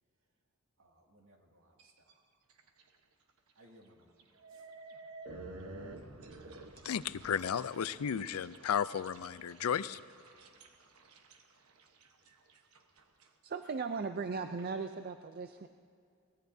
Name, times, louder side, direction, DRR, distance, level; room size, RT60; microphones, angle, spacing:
voice 1, 0.8-2.2 3.6-4.1 4.5-4.7 12.2-12.4, equal, 65° right, 2.2 m, -63 dB
sound 1, 1.8-2.1 2.5-2.9 3.3-3.4 4.2-13.3, right 2 dB, 85° right, 1.1 m, -51 dB
voice 2, 6.8-10.0, left 8 dB, 85° left, 0.4 m, -34 dB
voice 3, 13.4-15.7, right 4 dB, 45° right, 0.4 m, -37 dB
23.0 x 18.5 x 2.7 m
head